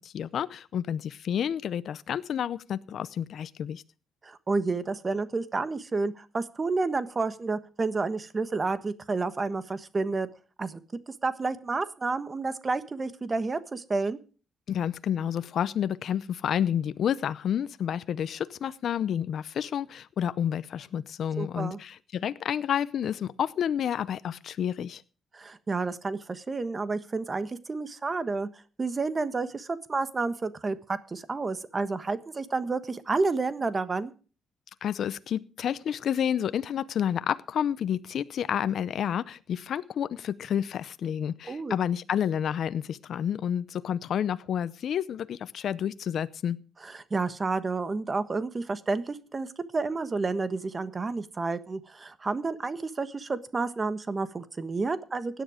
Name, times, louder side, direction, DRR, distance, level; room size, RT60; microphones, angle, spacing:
voice 1, 0.0-3.8 14.7-25.0 34.8-46.6, left 9 dB, 65° left, 0.6 m, -30 dB
voice 2, 4.2-10.3 10.6-10.8 11.2-14.2 21.4-21.8 25.3-28.5 28.8-34.1 41.5-41.7 46.8-49.5 49.7-55.4, right 3 dB, 30° right, 1.3 m, -30 dB
16.5 x 10.0 x 5.0 m
cardioid pair, 90°, 0 cm